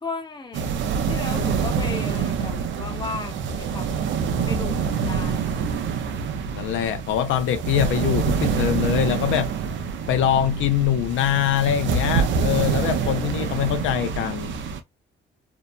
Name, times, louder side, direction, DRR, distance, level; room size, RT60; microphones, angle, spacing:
voice 1, 0.0-0.7 1.1-4.0 4.5-5.6, left 4 dB, 20° left, 0.9 m, -35 dB
sound 1, 0.5-14.8, right 6 dB, 70° right, 0.6 m, -26 dB
voice 2, 6.5-9.5 10.1-14.6, left 10 dB, 80° left, 0.4 m, -23 dB
2.8 x 2.1 x 2.5 m
cardioid pair, 90°, 20 cm